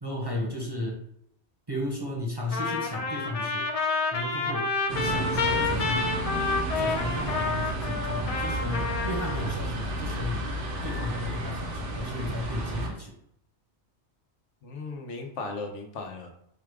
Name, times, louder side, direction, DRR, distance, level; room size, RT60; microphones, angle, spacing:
voice 1, 0.0-1.0 1.7-3.7 4.1-6.2 6.7-10.5 10.8-13.1, left 1 dB, 25° right, -2 dB, 0.7 m, -34 dB
Trumpet, 2.5-9.5, left 4 dB, 45° left, 0.5 m, -29 dB
sound 1, 4.9-12.9, right 1 dB, 85° right, 1.2 m, -32 dB
voice 2, 14.6-16.3, left 3 dB, 90° left, 3 dB, 1.2 m, -37 dB
4.8 x 2.3 x 4.7 m, 0.75 s
omnidirectional pair, 1.2 m